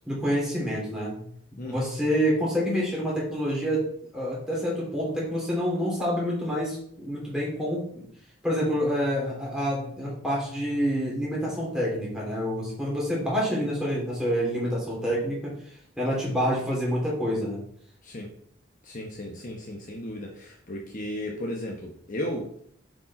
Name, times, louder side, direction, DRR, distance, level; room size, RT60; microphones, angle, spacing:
voice 1, 0.1-1.2 1.5-3.8 4.1-8.0 8.4-15.4 16.0-17.6, equal, 5° right, -5 dB, 3.1 m, -27 dB
voice 2, 18.8-22.6, left 1 dB, 40° left, 0 dB, 1.0 m, -35 dB
7.7 x 5.3 x 4.2 m, 0.65 s
head